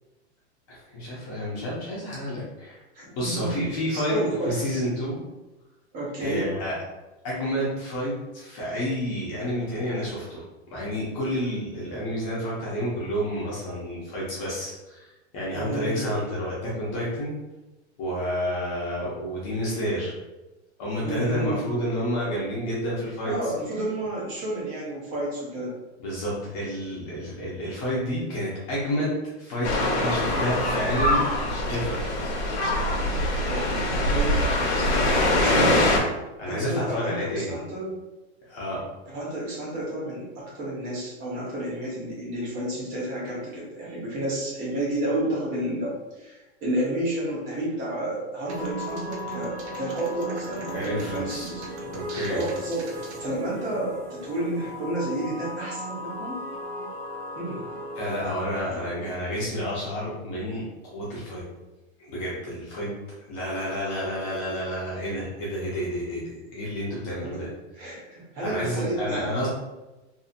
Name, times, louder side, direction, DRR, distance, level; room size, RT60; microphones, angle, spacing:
voice 1, 0.7-2.8 3.1-4.2 4.5-5.2 6.2-6.8 7.2-17.3 18.0-20.1 20.8-23.3 26.0-29.7 30.0-31.2 31.7-32.2 35.3-35.7 36.4-37.6 38.5-38.8 50.7-51.5 51.9-52.4 58.0-61.4 62.0-62.9 63.3-67.5 68.4-69.5, equal, 30° left, -6 dB, 0.6 m, -30 dB
voice 2, 2.9-4.8 5.9-6.5 15.5-16.1 21.0-21.6 23.2-25.7 33.4-34.4 35.4-35.9 36.5-38.0 39.1-51.6 52.3-56.4 57.4-57.7 58.7-58.8 67.2-67.4 67.7-69.3, right 1 dB, 25° right, -5 dB, 0.8 m, -31 dB
sound 1, 29.6-36.0, left 1 dB, 90° left, 0.9 m, -23 dB
sound 2, 48.5-58.6, equal, 85° right, 0.9 m, -36 dB
2.7 x 2.6 x 2.5 m, 1.0 s
supercardioid pair, 175°, 34 cm